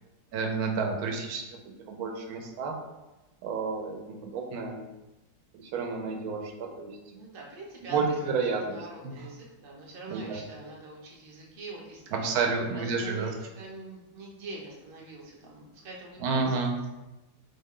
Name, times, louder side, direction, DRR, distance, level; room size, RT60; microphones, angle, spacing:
voice 1, 0.3-1.4 1.9-2.7 3.4-4.8 5.5-6.9 7.9-8.8 9.0-9.3 10.1-10.4 12.1-13.3 16.2-16.8, right 4 dB, 75° right, 1 dB, 1.0 m, -30 dB
voice 2, 7.1-8.1 8.5-12.2 12.7-16.6, right 2 dB, 50° right, -3 dB, 0.7 m, -44 dB
3.6 x 2.1 x 3.6 m, 1.0 s
omnidirectional pair, 1.7 m